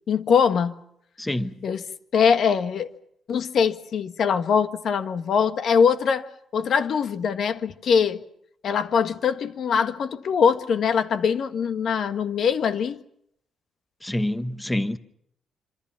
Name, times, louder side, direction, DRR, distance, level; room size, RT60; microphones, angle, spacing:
voice 1, 0.1-0.8 1.6-1.8 2.1-2.9 3.3-6.2 6.5-8.2 8.6-13.0, left 6 dB, 60° left, 1.6 m, -22 dB
voice 2, 1.2-1.7 14.0-15.0, left 1 dB, 10° left, 1.2 m, -27 dB
26.5 x 26.5 x 5.8 m
cardioid pair, 110°, 0 cm